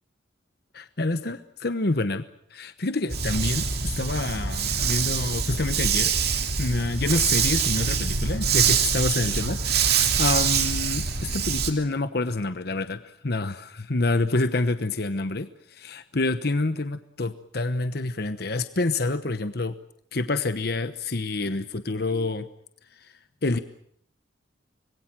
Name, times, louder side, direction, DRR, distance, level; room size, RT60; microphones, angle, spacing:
voice 1, 0.7-2.2 2.5-6.1 6.6-19.7 20.1-22.5 23.4-23.6, left 2 dB, 55° left, 11 dB, 1.1 m, -27 dB
Dog, 3.1-11.7, right 6 dB, 55° right, 2.5 m, -24 dB
25.5 x 21.5 x 7.6 m, 0.67 s
head